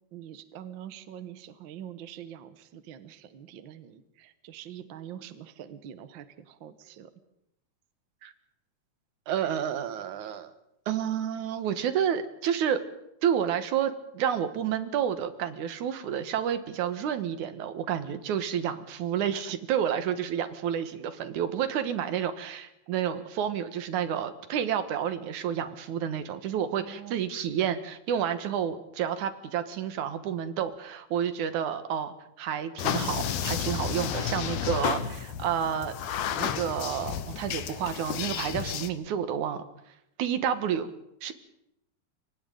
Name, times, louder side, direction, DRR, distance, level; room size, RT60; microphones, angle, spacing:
voice 1, 0.1-7.1 19.9-20.0 26.7-27.2, right 10 dB, 55° right, 11 dB, 1.4 m, -45 dB
voice 2, 9.3-10.5 10.9-12.8 13.2-35.9 36.3-39.6 40.2-40.9 41.2-41.3, right 9 dB, 80° right, 10 dB, 2.7 m, -30 dB
sound 1, 32.8-38.9, left 8 dB, 65° left, 2.2 m, -31 dB
29.5 x 24.0 x 3.9 m, 0.81 s
omnidirectional pair, 3.4 m